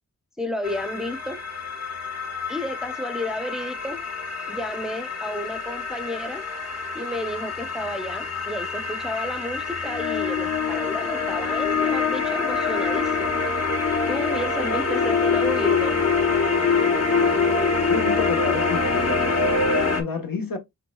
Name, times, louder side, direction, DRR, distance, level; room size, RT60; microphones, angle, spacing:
voice 1, 0.4-1.4 2.5-4.0 4.5-6.4 6.9-13.4 14.1-16.0, left 1 dB, ahead, 0.8 m, -31 dB
sound 1, 0.6-20.0, left 4 dB, 40° left, 1.2 m, -25 dB
voice 2, 17.8-19.4 20.0-20.6, left 5 dB, 60° left, 1.3 m, -30 dB
5.9 x 3.4 x 2.3 m
cardioid pair, 45°, 38 cm